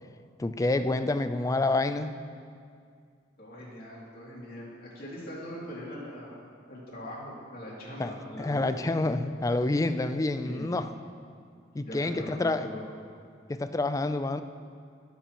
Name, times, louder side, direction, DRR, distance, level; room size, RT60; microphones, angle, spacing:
voice 1, 0.4-2.1 8.0-8.1 8.4-10.9 11.7-12.7 13.5-14.4, left 2 dB, 20° left, 10 dB, 0.3 m, -28 dB
voice 2, 3.4-8.8 10.4-10.8 11.8-12.9, equal, 55° left, -6 dB, 2.7 m, -41 dB
17.0 x 6.9 x 3.0 m, 2.2 s
head